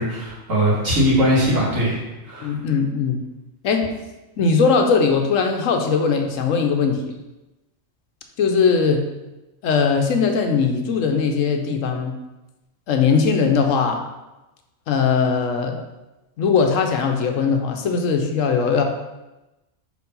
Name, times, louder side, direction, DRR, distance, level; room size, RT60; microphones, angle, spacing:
voice 1, 0.0-2.0 2.3-2.5, equal, 85° right, -6 dB, 2.4 m, -20 dB
voice 2, 2.4-3.2 3.6-3.9 4.4-7.1 8.4-9.1 9.6-12.1 12.9-14.1 14.9-15.8 16.4-18.8, left 5 dB, 85° left, 4 dB, 1.1 m, -20 dB
4.7 x 4.4 x 5.3 m, 1.0 s
omnidirectional pair, 1.3 m